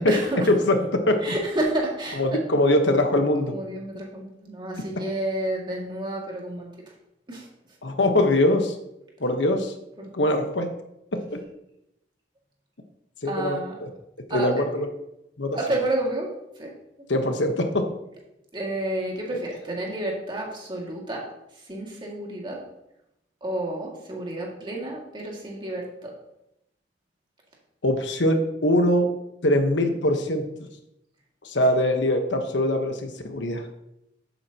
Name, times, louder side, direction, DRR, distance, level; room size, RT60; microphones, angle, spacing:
voice 1, 0.0-0.5 1.2-2.4 3.5-6.7 7.3-7.5 10.0-10.3 13.2-13.7 14.3-14.5 15.5-16.3 16.6-16.7 18.5-21.3 21.5-22.6 23.4-26.1, right 1 dB, 25° right, -2 dB, 2.2 m, -30 dB
voice 2, 0.7-1.2 2.2-3.5 7.8-8.7 9.2-9.7 10.1-10.7 11.1-11.4 13.2-13.9 14.3-14.9 15.4-15.6 17.1-17.9 27.8-29.1 29.4-30.4 31.4-33.6, left 1 dB, 85° left, 5 dB, 1.2 m, -22 dB
11.0 x 8.5 x 2.9 m, 0.84 s
head